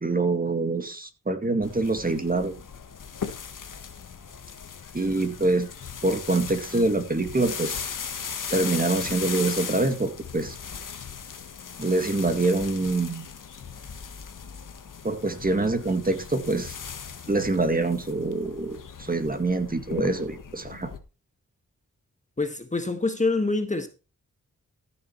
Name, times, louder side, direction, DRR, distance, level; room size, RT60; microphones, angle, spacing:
voice 1, 0.0-2.5 4.9-5.7 6.0-7.8 8.5-10.6 11.8-13.3 15.0-16.7 17.3-20.9, right 2 dB, 25° right, 2.1 m, -25 dB
sound 1, 1.6-21.0, left 7 dB, 75° left, 1.5 m, -38 dB
voice 2, 22.4-23.9, left 3 dB, 25° left, 1.5 m, -26 dB
14.5 x 6.9 x 4.5 m
wide cardioid pair, 90°, 32 cm